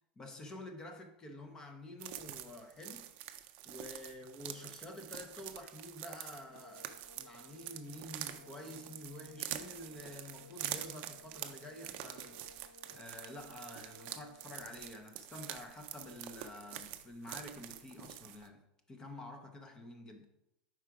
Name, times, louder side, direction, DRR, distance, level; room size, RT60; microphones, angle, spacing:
voice 1, 0.2-20.3, left 1 dB, 15° left, 0.6 m, -49 dB
sound 1, 2.0-18.5, right 12 dB, 40° right, 0.4 m, -46 dB
sound 2, 6.3-15.0, left 3 dB, 70° left, 1.5 m, -59 dB
4.8 x 4.7 x 4.6 m
supercardioid pair, 165°, 5 cm